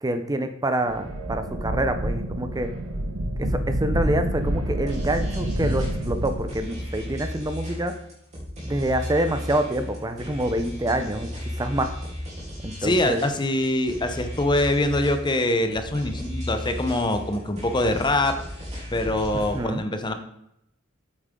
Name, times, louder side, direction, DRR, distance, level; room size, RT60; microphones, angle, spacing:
voice 1, 0.0-2.7 3.4-7.9 8.6-11.3 11.6-11.9 12.6-13.2 19.5-19.8, right 1 dB, 20° right, 8 dB, 0.6 m, -26 dB
sound 1, 0.8-7.0, right 1 dB, 70° right, 1.5 m, -28 dB
sound 2, 4.9-19.6, equal, 35° right, 3.3 m, -35 dB
voice 2, 12.8-18.4 18.9-20.1, left 1 dB, 20° left, 7 dB, 0.8 m, -24 dB
8.6 x 8.4 x 3.7 m, 0.78 s
head